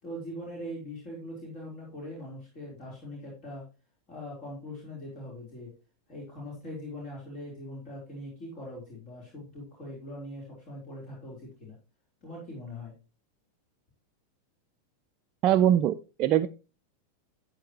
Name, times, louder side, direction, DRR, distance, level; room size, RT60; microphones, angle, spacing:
voice 1, 0.0-3.6 4.1-5.7 6.1-11.8 12.2-12.9, left 1 dB, 35° left, -3 dB, 3.9 m, -41 dB
voice 2, 15.4-16.5, right 11 dB, 35° right, 10 dB, 0.4 m, -22 dB
12.0 x 8.2 x 3.0 m, 0.32 s
figure-of-eight pair, 90°, 0 cm